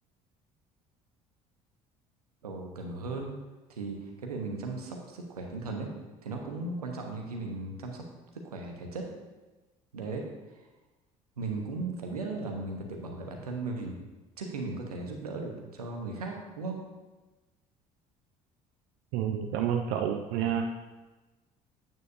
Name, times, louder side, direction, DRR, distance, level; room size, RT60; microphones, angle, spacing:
voice 1, 2.4-3.3 3.7-5.9 6.2-8.0 8.4-9.0 9.9-10.2 11.4-14.0 14.4-16.8, right 3 dB, 90° right, 2 dB, 1.1 m, -36 dB
voice 2, 19.1-20.7, right 8 dB, 65° right, 4 dB, 0.6 m, -29 dB
9.2 x 8.8 x 2.7 m, 1.2 s
hypercardioid pair, 60°, 19 cm